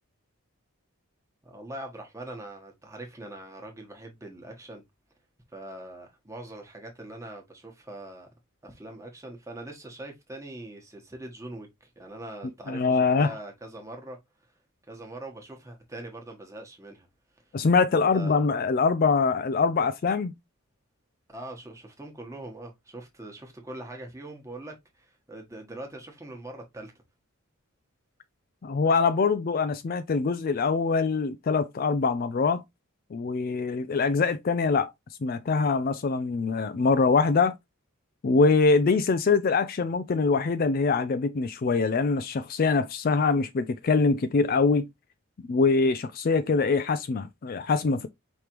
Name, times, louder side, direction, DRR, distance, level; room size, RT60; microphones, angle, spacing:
voice 1, 1.4-4.8 5.5-8.3 8.6-14.2 14.9-17.1 17.9-18.5 21.3-26.9, right 1 dB, 15° right, 1.2 m, -42 dB
voice 2, 12.7-13.3 17.5-20.3 28.6-32.6 33.1-34.9 35.2-37.5 38.2-44.9 45.5-48.1, left 4 dB, 40° left, 0.3 m, -24 dB
5.1 x 3.2 x 2.9 m
head